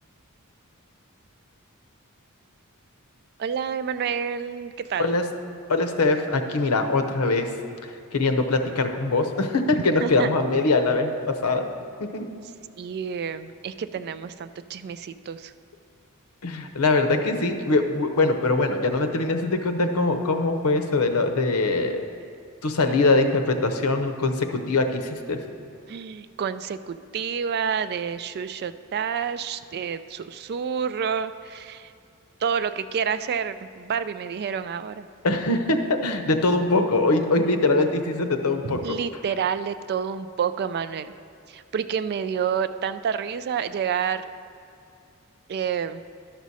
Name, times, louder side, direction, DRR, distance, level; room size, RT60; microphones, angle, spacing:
voice 1, 3.4-5.2 10.0-10.3 12.8-15.5 25.9-31.9 32.4-35.1 38.6-41.1 41.5-44.2 45.5-46.0, right 7 dB, 50° right, 12 dB, 0.3 m, -29 dB
voice 2, 5.7-7.5 8.1-11.7 12.0-12.3 16.4-22.0 22.6-25.4 35.2-39.0, left 3 dB, 80° left, 6 dB, 0.7 m, -22 dB
12.0 x 6.1 x 4.1 m, 2.5 s
head